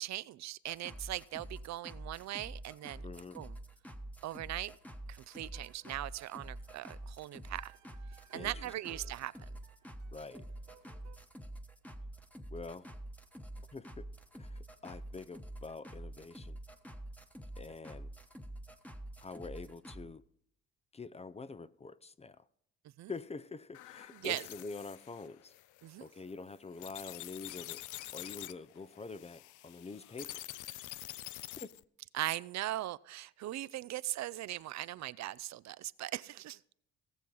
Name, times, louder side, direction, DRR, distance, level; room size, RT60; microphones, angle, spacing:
voice 1, 0.0-3.1 3.3-3.5 4.2-4.8 5.1-7.7 8.3-9.3 23.0-23.1 24.1-24.4 25.8-26.1 32.1-36.6, right 14 dB, 65° right, 0.4 m, -39 dB
sound 1, 0.7-20.0, right 1 dB, 5° left, 1.1 m, -47 dB
voice 2, 3.0-3.4 8.3-8.7 10.1-10.5 12.5-12.9 13.7-14.1 14.3-16.6 17.6-18.1 19.2-20.2 20.9-22.5 23.1-25.5 26.0-30.4 31.6-31.7, left 4 dB, 20° left, 0.5 m, -46 dB
sound 2, 5.5-11.2, right 10 dB, 90° right, 1.8 m, -61 dB
sound 3, 23.7-31.8, left 15 dB, 80° left, 0.5 m, -47 dB
17.5 x 7.0 x 3.9 m
cardioid pair, 90°, 30 cm